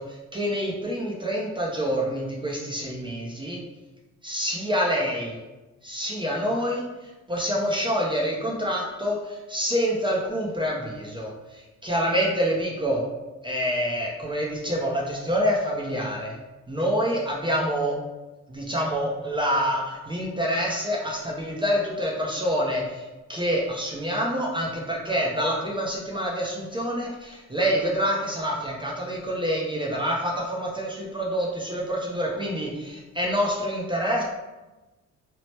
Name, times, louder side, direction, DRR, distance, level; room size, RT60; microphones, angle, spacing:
voice 1, 0.0-3.6 4.2-5.3 5.8-6.8 7.3-13.0 13.4-16.3 16.7-17.9 18.5-34.2, equal, 15° right, -3 dB, 0.5 m, -27 dB
2.9 x 2.0 x 3.1 m, 1.1 s
cardioid pair, 90°, 30 cm